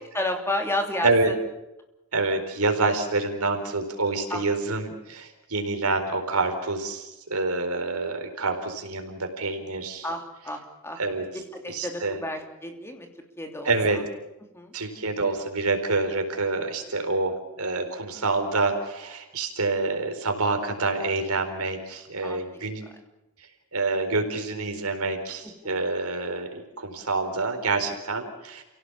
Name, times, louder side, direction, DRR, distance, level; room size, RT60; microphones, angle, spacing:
voice 1, 0.1-1.1 4.3-4.4 10.0-11.0 11.5-13.1 13.4-14.0 14.5-14.7 22.2-22.6 25.6-25.8, left 1 dB, 10° left, 4 dB, 3.1 m, -31 dB
voice 2, 1.0-1.4 2.1-10.1 11.0-11.3 11.7-12.2 13.6-14.0 14.7-22.9 23.7-28.6, right 3 dB, 85° right, 5 dB, 4.3 m, -27 dB
29.5 x 17.5 x 7.2 m, 0.95 s
head